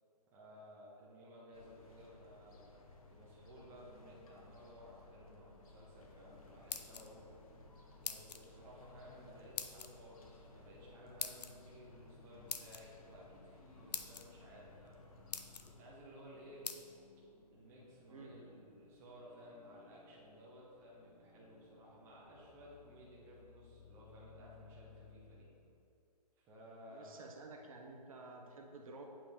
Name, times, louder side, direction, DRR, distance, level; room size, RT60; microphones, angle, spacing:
voice 1, 0.3-2.7 3.1-7.2 8.0-15.0 15.6-16.7 17.5-25.5 26.4-27.3, equal, 10° right, -5 dB, 0.9 m, -57 dB
sound 1, 1.5-15.8, left 3 dB, 55° left, 1.1 m, -60 dB
sound 2, 6.1-25.3, left 4 dB, 15° left, 0.9 m, -64 dB
sound 3, 6.5-7.3 8.0-8.4 9.6-9.9 11.2-11.5 12.5-12.8 13.5-13.6 13.9-14.2 14.9-15.0 15.3-15.7 16.6-16.8, left 6 dB, 75° left, 0.6 m, -42 dB
voice 2, 26.9-29.0, right 3 dB, 55° right, 1 dB, 0.9 m, -52 dB
8.6 x 4.9 x 3.6 m, 2.5 s
hypercardioid pair, 155°, 21 cm